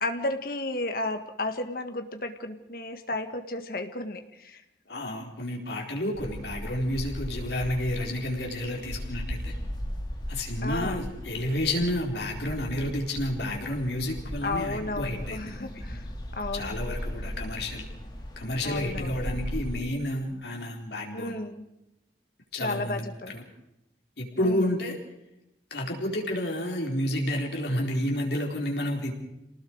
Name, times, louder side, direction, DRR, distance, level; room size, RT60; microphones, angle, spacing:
voice 1, 0.0-4.6 10.6-11.0 14.4-16.0 16.3-16.8 18.6-19.1 21.1-21.6 22.6-23.3 24.4-24.6, left 2 dB, 50° left, 7 dB, 1.8 m, -33 dB
voice 2, 4.9-9.5 10.3-15.7 16.5-17.9 18.4-21.3 22.5-23.4 24.2-25.0 25.7-29.1, left 1 dB, 70° left, 0 dB, 4.4 m, -30 dB
sound 1, 6.1-19.8, equal, 25° left, 3.4 m, -37 dB
28.5 x 19.0 x 4.8 m, 0.88 s
head